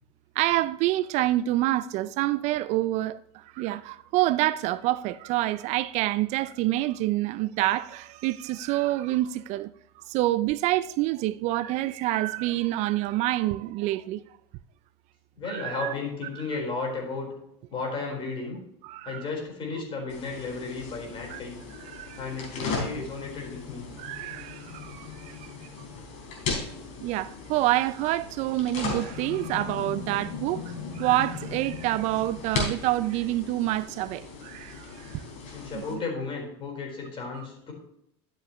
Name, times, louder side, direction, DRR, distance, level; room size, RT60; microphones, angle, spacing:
voice 1, 0.4-9.7 10.1-14.2 15.5-15.9 18.8-19.2 21.3-21.4 21.7-22.2 24.0-25.5 27.0-35.2 35.7-36.0 37.4-37.5, right 16 dB, 55° right, 0.4 m, -27 dB
voice 2, 15.4-17.3 17.7-18.6 19.0-21.6 22.2-23.8 35.5-37.7, left 4 dB, 35° left, 4.2 m, -34 dB
sound 1, 20.1-35.9, left 4 dB, 55° left, 3.9 m, -37 dB
12.0 x 7.6 x 3.1 m
supercardioid pair, 110°, 14 cm